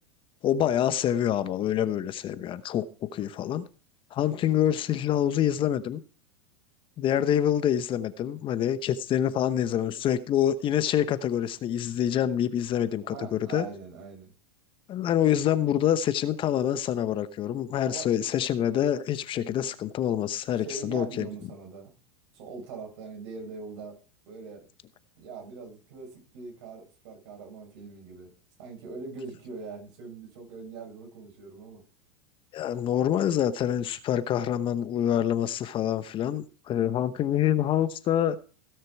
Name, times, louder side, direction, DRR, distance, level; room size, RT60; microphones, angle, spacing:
voice 1, 0.4-3.6 4.1-6.0 7.0-13.7 14.9-21.3 32.5-38.4, left 10 dB, 35° left, 0.9 m, -26 dB
voice 2, 13.1-14.3 17.8-18.1 20.5-21.9 22.3-24.0 24.3-24.7 25.2-28.3 28.6-31.8, right 4 dB, 65° right, 5.8 m, -42 dB
17.0 x 6.7 x 4.7 m
hypercardioid pair, 105°, 15 cm